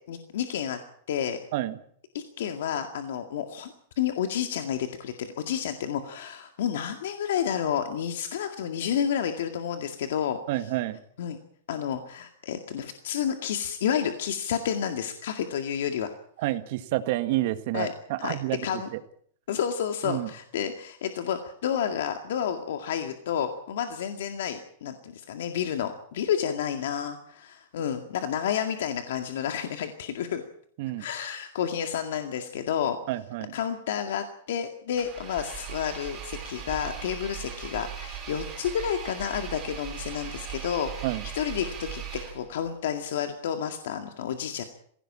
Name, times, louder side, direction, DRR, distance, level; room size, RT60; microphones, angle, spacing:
voice 1, 0.1-0.8 1.1-1.4 2.1-10.4 11.2-11.4 11.7-16.1 17.7-17.9 18.2-18.9 19.5-30.4 31.0-33.0 33.5-42.0 42.3-44.6, left 8 dB, 70° left, 6 dB, 2.0 m, -30 dB
voice 2, 10.5-11.0 16.4-18.7 18.9-19.0 20.0-20.3 30.8-31.1 33.1-33.6 41.0-41.3, right 16 dB, 50° right, 10 dB, 1.8 m, -29 dB
Engine, 34.9-42.7, right 8 dB, 15° right, 5.4 m, -39 dB
21.0 x 16.5 x 8.8 m, 0.63 s
supercardioid pair, 165°, 0 cm